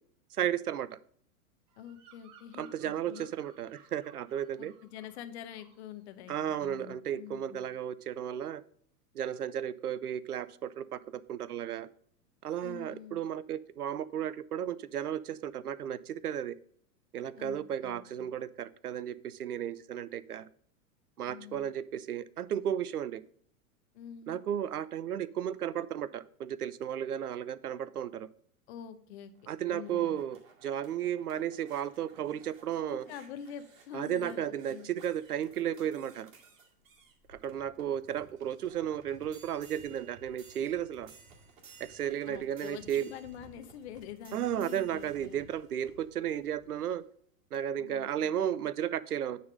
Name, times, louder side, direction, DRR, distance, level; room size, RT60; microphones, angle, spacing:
voice 1, 0.3-0.9 2.6-4.7 6.3-8.6 9.1-11.9 12.4-16.5 17.1-20.5 21.2-23.2 24.3-28.3 29.5-33.0 33.9-36.3 37.3-41.1 41.8-43.1 44.3-47.0 47.5-49.4, right 10 dB, 75° right, 18 dB, 0.6 m, -34 dB
Bird vocalization bird call bird song, 1.7-5.2 5.5-5.9, right 7 dB, 15° right, 0.4 m, -59 dB
voice 2, 1.8-3.3 4.6-7.7 12.6-13.2 17.4-18.3 21.2-21.7 23.9-24.4 28.7-29.3 29.7-30.2 32.8-34.9 42.3-45.4 47.8-48.4, left 9 dB, 45° left, 10 dB, 1.0 m, -46 dB
sound 1, 29.3-47.0 47.5-47.6, right 4 dB, 60° right, 2.2 m, -57 dB
9.5 x 4.1 x 5.2 m, 0.62 s
figure-of-eight pair, 100°, 45 cm